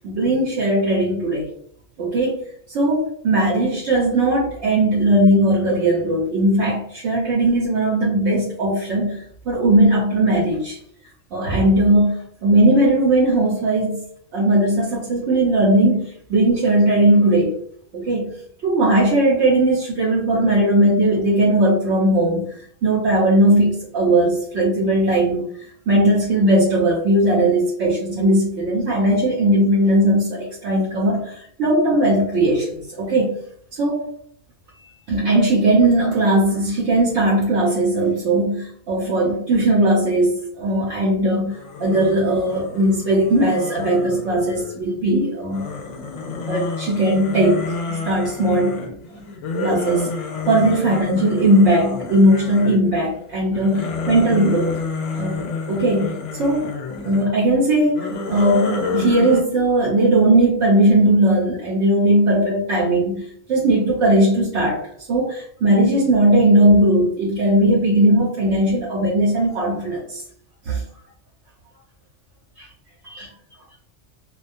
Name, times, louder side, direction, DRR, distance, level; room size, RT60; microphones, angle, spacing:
voice 1, 0.0-1.5 2.0-2.4 2.7-10.8 11.3-14.0 14.3-17.5 17.9-18.3 18.6-25.5 25.9-33.3 33.7-34.1 35.1-45.7 46.5-47.6 47.9-48.9 49.6-50.1 50.5-54.7 55.1-56.8 57.0-70.2 70.7-70.8 73.1-73.3, right 1 dB, 70° right, -4 dB, 0.9 m, -18 dB
sound 1, 41.5-44.9 45.5-53.0 53.4-57.3 57.8-59.4, left 4 dB, 75° left, 0.9 m, -30 dB
2.3 x 2.2 x 2.5 m, 0.65 s
omnidirectional pair, 1.3 m